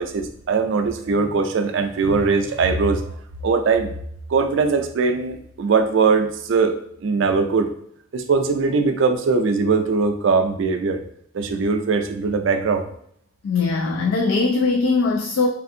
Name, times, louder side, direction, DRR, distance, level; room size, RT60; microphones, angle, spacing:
voice 1, 0.0-3.0 3.4-3.9 4.3-7.7 8.1-11.0 11.3-12.9, right 4 dB, 65° right, 7 dB, 0.4 m, -20 dB
voice 2, 13.4-15.5, left 4 dB, 85° left, 2 dB, 0.3 m, -20 dB
3.3 x 2.5 x 2.7 m, 0.67 s
head